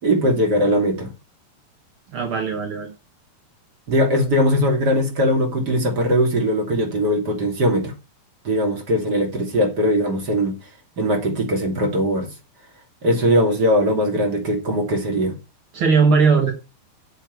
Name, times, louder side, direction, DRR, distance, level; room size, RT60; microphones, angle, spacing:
voice 1, 0.0-1.1 3.9-7.9 8.4-10.6 11.0-12.3 13.0-15.3, equal, 25° right, 2.6 m, -20 dB
voice 2, 2.1-2.9 15.7-16.5, right 5 dB, 55° right, 1.4 m, -18 dB
8.3 x 6.3 x 8.2 m
omnidirectional pair, 5.1 m